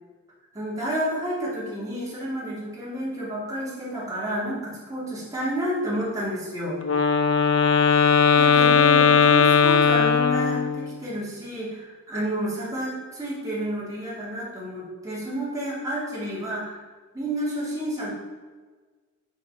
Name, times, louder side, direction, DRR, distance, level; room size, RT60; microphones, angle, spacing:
voice 1, 0.5-6.8 8.4-16.8 17.1-18.1, equal, 15° right, -7 dB, 2.8 m, -30 dB
Wind instrument woodwind instrument, 6.8-10.9, left 6 dB, 60° left, 0.6 m, -18 dB
7.7 x 5.0 x 5.6 m, 1.4 s
head